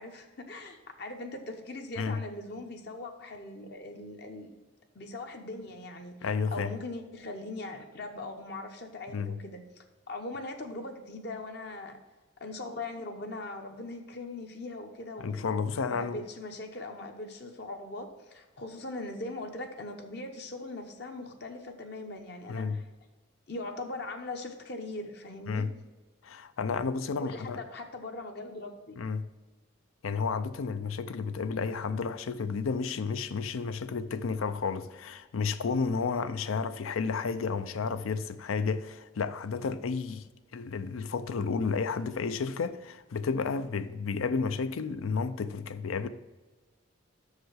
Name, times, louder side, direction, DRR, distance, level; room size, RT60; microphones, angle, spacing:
voice 1, 0.0-4.5 4.9-12.0 12.4-15.5 15.8-22.8 23.5-25.7 27.2-29.0, left 2 dB, 55° left, 0.8 m, -40 dB
voice 2, 6.2-6.7 9.1-9.3 15.2-16.2 22.5-22.8 25.5-25.7 26.2-27.6 29.0-29.3 30.0-40.3 40.5-46.1, left 5 dB, 85° left, 0.5 m, -31 dB
6.5 x 4.9 x 6.3 m
head